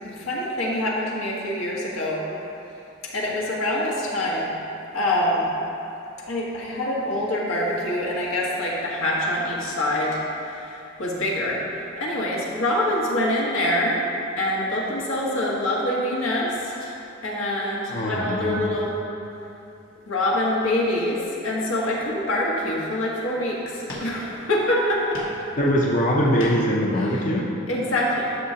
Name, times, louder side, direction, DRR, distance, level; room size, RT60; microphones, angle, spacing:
voice 1, 0.0-2.3 3.1-4.5 4.9-5.5 6.3-11.6 12.0-14.0 14.4-17.0 17.2-19.0 20.0-25.2 27.0-27.3 27.7-28.4, left 1 dB, 90° left, -4 dB, 1.5 m, -25 dB
voice 2, 17.9-18.6 25.6-27.5, equal, 40° left, -3 dB, 0.7 m, -22 dB
sound 1, 20.4-20.6 21.1-21.9 22.3-22.5 22.8-23.2 23.9-24.5 24.9-25.5 25.8-26.8, left 1 dB, 70° left, 1.5 m, -39 dB
11.0 x 6.3 x 2.8 m, 2.9 s
head